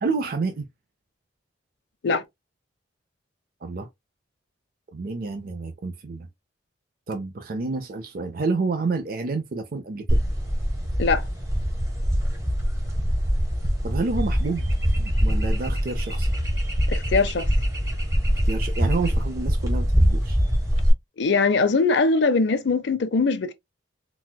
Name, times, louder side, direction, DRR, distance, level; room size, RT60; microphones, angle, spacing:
voice 1, 0.0-0.7 3.6-3.9 4.9-6.3 7.1-10.2 13.8-14.7 14.9-16.3 18.5-20.4, right 3 dB, 45° right, 0.4 m, -29 dB
sound 1, 10.1-20.9, equal, 15° right, 1.0 m, -23 dB
voice 2, 16.9-17.5 21.2-23.5, left 4 dB, 60° left, 0.5 m, -21 dB
4.1 x 2.2 x 2.2 m
head